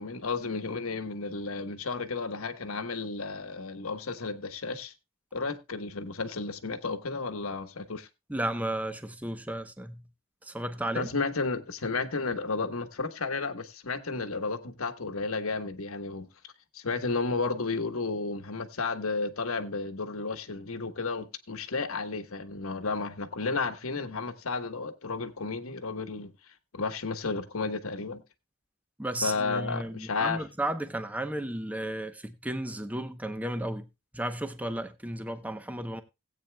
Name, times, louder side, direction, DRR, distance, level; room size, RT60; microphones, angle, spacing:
voice 1, 0.0-4.9 5.3-8.1 10.9-16.3 16.7-26.3 26.7-28.2 29.2-30.4, left 4 dB, 80° left, 1.2 m, -32 dB
voice 2, 8.3-10.0 10.5-11.1 29.0-33.8 34.1-36.0, right 1 dB, 5° right, 0.7 m, -33 dB
18.0 x 8.7 x 2.2 m
head